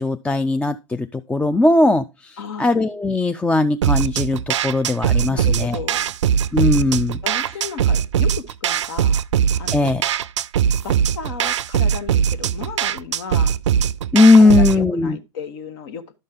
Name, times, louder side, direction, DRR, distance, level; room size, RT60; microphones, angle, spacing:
voice 1, 0.0-5.8 6.5-7.2 9.7-10.0 14.1-15.2, left 3 dB, 10° left, 0.3 m, -18 dB
voice 2, 2.4-2.7 5.3-6.1 7.2-9.2 9.5-10.0 10.8-13.6 14.3-16.0, left 6 dB, 60° left, 1.2 m, -34 dB
sound 1, 3.8-14.8, right 8 dB, 75° right, 0.4 m, -21 dB
11.5 x 5.3 x 3.7 m
hypercardioid pair, 100°, 15 cm